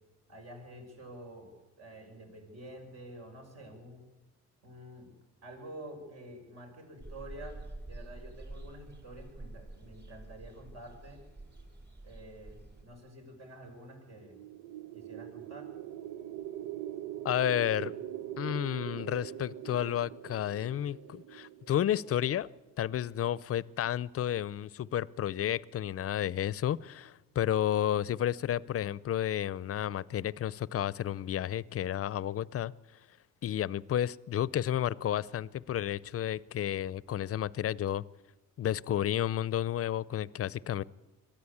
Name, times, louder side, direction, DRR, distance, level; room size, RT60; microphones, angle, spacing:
voice 1, 0.3-1.5 1.8-4.0 4.6-5.2 5.4-7.6 7.8-11.2 12.0-14.4 14.9-15.7, right 1 dB, 60° right, 3 dB, 6.1 m, -48 dB
sound 1, 7.0-12.8, right 2 dB, 35° right, 4.3 m, -47 dB
sound 2, 14.2-22.3, right 12 dB, 85° right, 0.8 m, -42 dB
voice 2, 17.2-17.9 18.4-22.5 22.8-32.7 33.4-38.0 38.6-40.8, left 11 dB, 50° left, 21 dB, 0.6 m, -31 dB
22.0 x 13.5 x 8.6 m, 1.1 s
cardioid pair, 90°, 30 cm